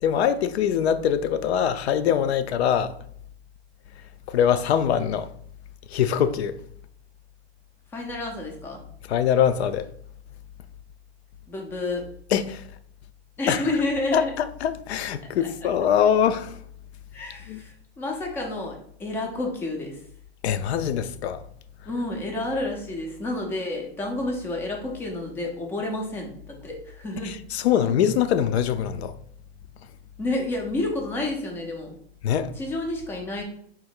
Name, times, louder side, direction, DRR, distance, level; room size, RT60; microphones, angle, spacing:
voice 1, 0.0-2.9 4.3-5.3 5.9-6.6 9.1-9.9 12.3-12.6 13.5-13.6 14.1-16.6 17.5-17.6 20.4-21.4 27.2-29.2 32.2-32.5, left 9 dB, 75° left, 0.5 m, -23 dB
voice 2, 7.9-8.8 11.5-12.1 13.4-14.3 15.4-15.5 17.1-20.0 21.9-27.3 30.2-32.0 32.6-33.4, left 2 dB, 5° left, 0.3 m, -30 dB
3.8 x 2.0 x 4.3 m
hypercardioid pair, 140°, 33 cm